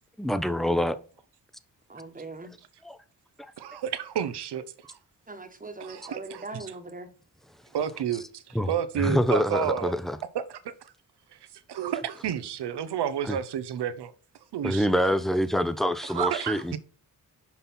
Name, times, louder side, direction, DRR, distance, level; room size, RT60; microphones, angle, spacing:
voice 1, 0.2-1.0 2.8-3.0 3.4-3.5 8.5-8.7 9.0-10.2 13.3-13.4 14.6-16.8, equal, ahead, 0.6 m, -26 dB
voice 2, 1.9-2.5 5.3-7.1, right 3 dB, 20° right, 1.3 m, -40 dB
voice 3, 3.6-5.0 5.8-6.5 7.7-9.9 10.3-10.7 11.7-14.1 14.5-14.9 16.1-16.8, right 9 dB, 85° right, 0.8 m, -30 dB
5.8 x 5.5 x 4.3 m
cardioid pair, 85°, 39 cm